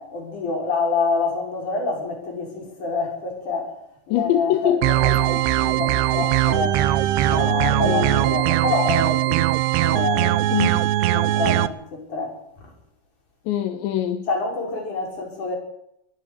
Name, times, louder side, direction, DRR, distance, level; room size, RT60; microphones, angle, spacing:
voice 1, 0.0-3.8 4.1-6.8 7.3-9.5 9.8-10.4 11.1-12.7 14.3-15.6, left 3 dB, 40° left, 7.4 m, -27 dB
voice 2, 4.1-4.8 7.5-8.2 10.5-10.9 13.5-14.3, left 11 dB, 80° left, 3.4 m, -23 dB
sound 1, 4.8-11.7, right 14 dB, 75° right, 2.6 m, -20 dB
22.0 x 12.0 x 9.8 m
omnidirectional pair, 5.3 m